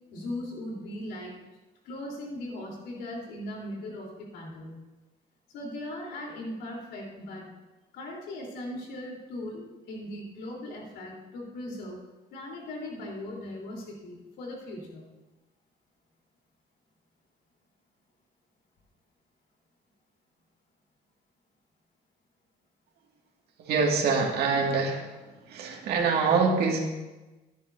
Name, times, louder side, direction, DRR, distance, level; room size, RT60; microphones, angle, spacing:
voice 1, 0.1-1.4 1.8-4.8 5.5-7.5 7.9-12.0 12.3-15.1, left 1 dB, 85° left, -2 dB, 3.8 m, -39 dB
voice 2, 23.6-25.1 25.5-26.8, right 4 dB, 70° right, 0 dB, 2.2 m, -25 dB
14.0 x 10.5 x 2.7 m, 1.1 s
cardioid pair, 110°, 17 cm